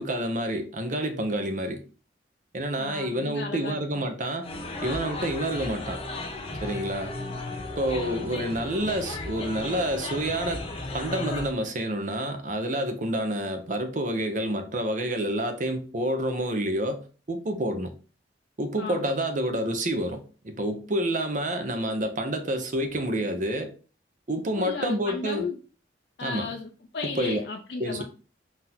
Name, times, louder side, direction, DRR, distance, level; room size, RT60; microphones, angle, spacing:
voice 1, 0.0-1.8 2.5-4.5 4.8-6.0 6.6-7.1 7.8-10.7 10.9-17.9 18.6-23.7 24.3-25.4 26.2-26.5 27.2-27.4 27.8-28.0, right 1 dB, 45° right, 0.7 m, -28 dB
voice 2, 2.8-4.1 18.8-19.2 24.6-25.6 26.2-28.0, left 4 dB, 65° left, 0.4 m, -35 dB
sound 1, 4.4-11.5, left 2 dB, 30° left, 0.7 m, -35 dB
4.0 x 2.6 x 4.2 m
head